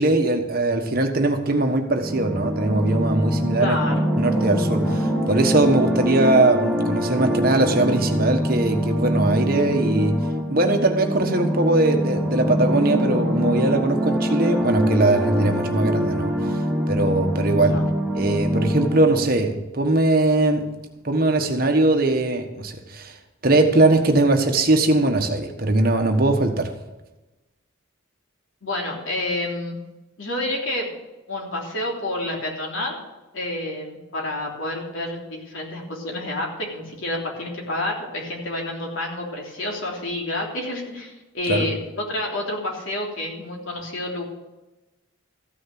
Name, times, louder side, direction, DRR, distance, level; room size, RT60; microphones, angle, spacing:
voice 1, 0.0-3.8 4.2-10.1 10.5-16.5 16.9-17.8 18.1-20.6 21.0-23.2 23.4-26.7 41.5-41.7, right 2 dB, 45° right, 5 dB, 1.3 m, -20 dB
sound 1, 2.0-19.3, equal, ahead, 1.8 m, -24 dB
voice 2, 3.6-4.1 17.7-17.9 28.6-29.8 30.2-30.9 31.3-33.0 33.3-44.2, left 1 dB, 75° left, -1 dB, 3.2 m, -29 dB
14.5 x 6.3 x 7.7 m, 1.0 s
head